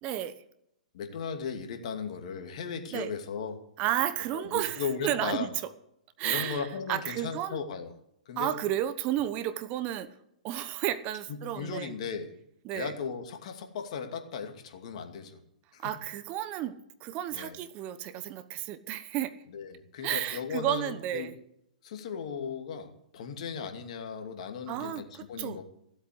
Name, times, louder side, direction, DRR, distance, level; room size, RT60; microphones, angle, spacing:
voice 1, 0.0-0.3 2.9-3.1 3.8-5.5 6.2-7.6 8.4-10.1 10.4-11.9 12.6-12.9 15.8-19.3 20.0-21.4 24.7-25.6, right 12 dB, 35° right, 13 dB, 1.0 m, -32 dB
voice 2, 0.9-3.6 4.3-5.5 6.2-7.9 8.3-8.5 11.3-12.3 12.7-15.4 15.7-16.0 17.3-17.6 19.5-21.3 21.8-25.6, left 6 dB, 55° left, 5 dB, 2.5 m, -37 dB
16.0 x 8.1 x 7.8 m, 0.77 s
hypercardioid pair, 115°, 4 cm